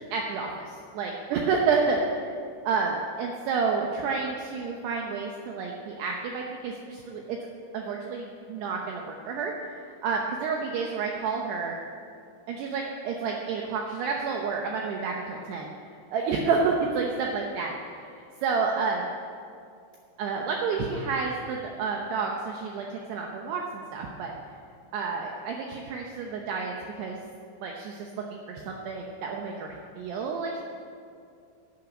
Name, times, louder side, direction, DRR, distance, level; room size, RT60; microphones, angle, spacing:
voice 1, 0.1-2.3 2.6-7.4 7.7-11.7 12.5-15.7 16.1-17.7 18.1-19.1 20.2-24.3 24.9-27.2 27.6-30.6, right 5 dB, 75° right, 0 dB, 2.7 m, -30 dB
12.0 x 9.4 x 8.7 m, 2.4 s
omnidirectional pair, 5.6 m